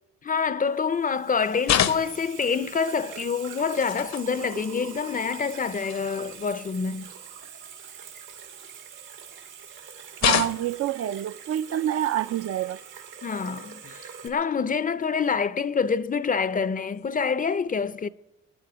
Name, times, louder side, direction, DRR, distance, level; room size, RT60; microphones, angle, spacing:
voice 1, 0.2-7.1 13.2-18.1, left 5 dB, 30° left, 0.5 m, -27 dB
Water tap faucet / Sink (filling or washing), 0.7-14.3, right 7 dB, 90° right, 2.6 m, -44 dB
sound 1, 1.6-2.4 3.7-4.3 5.3-5.4 5.9-6.0 8.2-9.0 10.2-10.9 12.6-12.8 14.4-14.5 15.7-15.8 17.0-17.3, left 10 dB, 65° left, 0.8 m, -27 dB
voice 2, 10.2-12.8, right 11 dB, 55° right, 0.4 m, -27 dB
24.0 x 10.0 x 4.8 m
cardioid pair, 90°, 30 cm